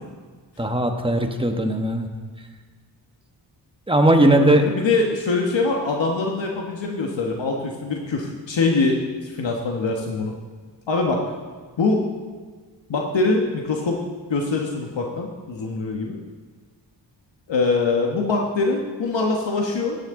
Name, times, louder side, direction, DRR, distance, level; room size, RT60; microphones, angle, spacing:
voice 1, 0.6-2.1 3.9-4.7, right 1 dB, 10° right, 4 dB, 1.2 m, -18 dB
voice 2, 4.3-10.3 10.9-11.3 11.8-12.0 12.9-14.0 14.3-16.2 17.5-20.0, left 3 dB, 75° left, 1 dB, 1.4 m, -23 dB
17.0 x 10.5 x 3.8 m, 1.5 s
wide cardioid pair, 115°, 45 cm